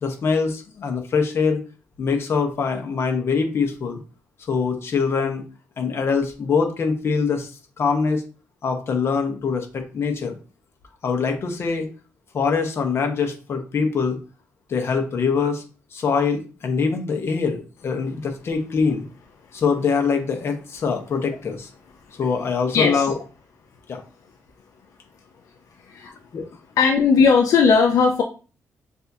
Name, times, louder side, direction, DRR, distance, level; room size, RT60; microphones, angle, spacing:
voice 1, 0.0-1.6 2.0-4.0 4.5-5.4 5.8-7.5 7.8-8.2 8.6-10.4 11.0-11.9 12.3-14.2 14.7-15.6 15.9-19.0 19.5-21.7 22.2-23.2 23.9-24.0 26.3-26.5, left 5 dB, 50° left, 4 dB, 1.0 m, -23 dB
voice 2, 22.7-23.1 25.8-26.1 26.8-28.2, left 5 dB, 75° left, 2 dB, 0.6 m, -17 dB
6.8 x 2.7 x 2.7 m, 0.34 s
cardioid pair, 130°, 6 cm